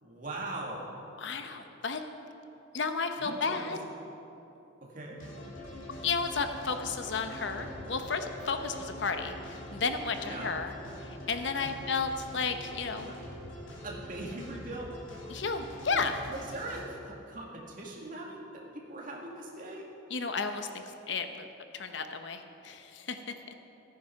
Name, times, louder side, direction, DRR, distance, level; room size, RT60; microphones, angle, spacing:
voice 1, 0.0-0.9 3.2-3.8 4.8-5.2 10.2-10.5 11.6-11.8 13.8-14.9 16.3-19.9, right 2 dB, 45° right, -2 dB, 2.1 m, -41 dB
voice 2, 1.2-2.0 2.7-3.8 6.0-10.7 11.0-13.1 15.3-16.2 20.1-21.5 21.7-23.2, left 4 dB, 65° left, 7 dB, 0.9 m, -33 dB
sound 1, 5.2-16.9, left 1 dB, 80° left, 3.0 m, -44 dB
14.5 x 9.6 x 5.8 m, 2.8 s
head